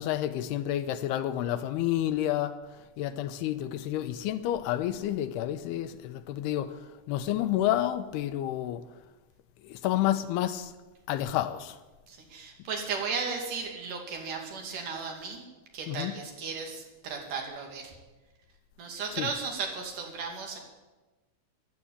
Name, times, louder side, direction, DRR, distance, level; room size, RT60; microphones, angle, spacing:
voice 1, 0.0-2.6 3.0-6.7 7.1-8.8 9.8-10.7 11.1-11.8 15.9-16.1 19.2-19.3, left 12 dB, 80° left, 2.5 m, -29 dB
voice 2, 12.1-15.4 15.7-17.9 18.8-20.6, right 5 dB, 50° right, 3.5 m, -35 dB
14.5 x 10.5 x 8.7 m
omnidirectional pair, 5.1 m